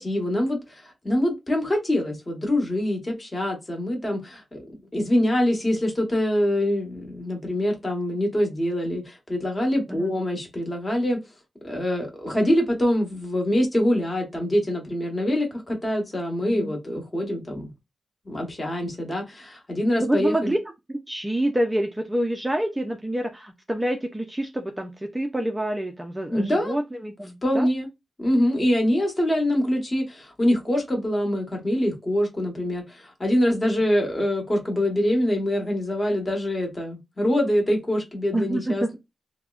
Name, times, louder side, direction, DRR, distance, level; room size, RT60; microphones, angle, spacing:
voice 1, 0.0-4.6 4.9-11.2 11.6-17.7 18.2-20.5 26.3-26.8 27.4-27.9 28.2-38.9, left 1 dB, 25° left, 1.2 m, -24 dB
voice 2, 16.4-16.8 20.0-20.6 20.9-27.7 38.3-38.9, right 1 dB, 10° right, 0.4 m, -27 dB
3.5 x 2.0 x 2.4 m
cardioid pair, 80°, 0 cm